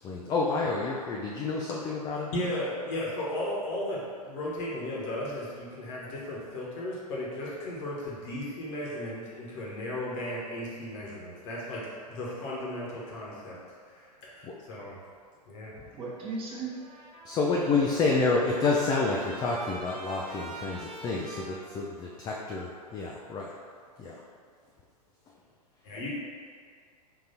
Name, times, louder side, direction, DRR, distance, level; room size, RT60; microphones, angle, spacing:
voice 1, 0.0-2.3 14.4-14.5 17.2-23.5 24.0-24.2, left 3 dB, 20° left, -3 dB, 0.4 m, -29 dB
voice 2, 2.3-13.6 13.9-15.0 15.5-15.7 25.8-26.1, left 1 dB, 50° left, -5 dB, 1.3 m, -35 dB
voice 3, 15.9-17.1, right 3 dB, 25° right, -6 dB, 1.0 m, -37 dB
Trumpet, 16.7-22.3, right 2 dB, 60° right, 0.9 m, -45 dB
3.8 x 2.7 x 4.2 m, 2.1 s
figure-of-eight pair, 100°, 21 cm